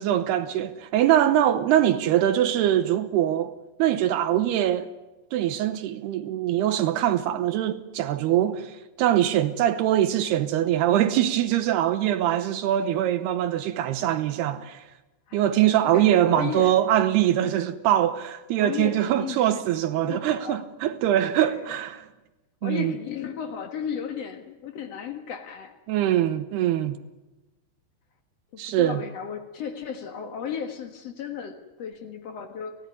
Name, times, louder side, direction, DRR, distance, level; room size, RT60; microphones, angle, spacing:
voice 1, 0.0-3.5 3.8-4.9 5.3-14.8 15.3-22.1 22.6-22.9 25.9-27.0 28.6-29.0, right 11 dB, 80° right, 2.4 m, -23 dB
voice 2, 15.8-16.7 18.6-19.6 20.1-20.6 21.4-21.7 22.6-25.7 28.5-32.8, left 7 dB, 85° left, 1.4 m, -34 dB
29.5 x 15.5 x 9.8 m
omnidirectional pair, 5.9 m